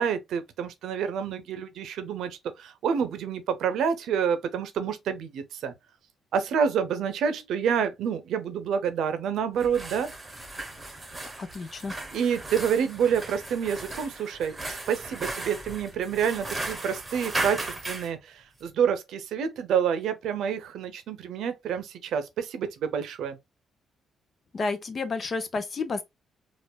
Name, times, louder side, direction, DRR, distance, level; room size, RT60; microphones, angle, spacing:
voice 1, 0.0-5.7 6.3-10.1 12.1-23.4, right 7 dB, 75° right, 0.6 m, -28 dB
sound 1, 9.5-18.1, right 2 dB, 15° right, 1.1 m, -36 dB
voice 2, 11.4-11.9 24.5-26.0, left 3 dB, 40° left, 0.7 m, -31 dB
4.4 x 2.4 x 2.3 m
cardioid pair, 90°, 0 cm